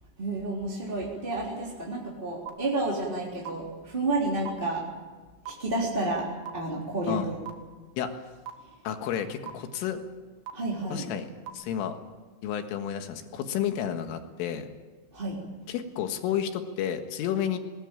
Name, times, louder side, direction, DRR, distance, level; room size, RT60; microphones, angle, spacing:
voice 1, 0.2-4.9 5.4-7.3 10.5-11.0 15.1-15.4, right 2 dB, 15° right, -3 dB, 2.8 m, -30 dB
sound 1, 2.5-2.6 3.5-3.6 4.5-4.6 5.5-5.6 6.5-6.6 7.5-7.6 8.5-8.6 9.5-9.6 10.5-10.6 11.5-11.6, right 11 dB, 75° right, 4.4 m, -36 dB
voice 2, 8.9-10.0 10.9-11.3 11.5-12.0 12.4-14.7 15.7-17.6, left 9 dB, 75° left, 7 dB, 4.1 m, -31 dB
21.0 x 20.0 x 9.0 m, 1.3 s
omnidirectional pair, 5.9 m